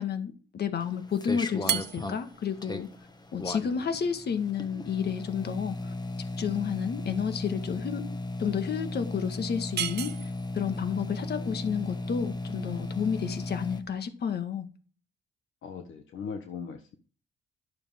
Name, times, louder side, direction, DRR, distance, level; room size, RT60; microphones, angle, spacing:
voice 1, 0.0-2.9 3.3-5.9 6.4-8.0 8.4-14.7, left 7 dB, 55° left, 1.7 m, -31 dB
sound 1, 0.8-13.8, left 2 dB, 20° left, 1.3 m, -36 dB
sound 2, 1.6-14.0, right 10 dB, 60° right, 0.9 m, -39 dB
voice 2, 15.6-17.0, left 6 dB, 75° left, 1.2 m, -40 dB
12.0 x 6.8 x 3.7 m
cardioid pair, 90°, 20 cm